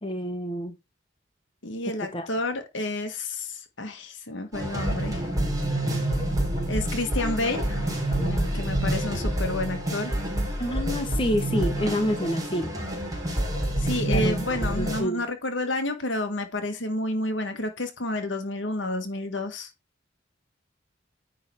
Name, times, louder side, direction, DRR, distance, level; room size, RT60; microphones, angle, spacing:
voice 1, 0.0-0.7 2.1-2.3 10.6-12.7 14.0-14.3 14.7-15.2, equal, 30° left, 1.4 m, -28 dB
voice 2, 1.6-5.2 6.7-7.8 8.2-10.2 13.8-19.7, left 2 dB, 80° left, 1.5 m, -30 dB
sound 1, 4.5-15.0, right 1 dB, 20° right, 3.1 m, -27 dB
9.7 x 3.9 x 4.6 m
head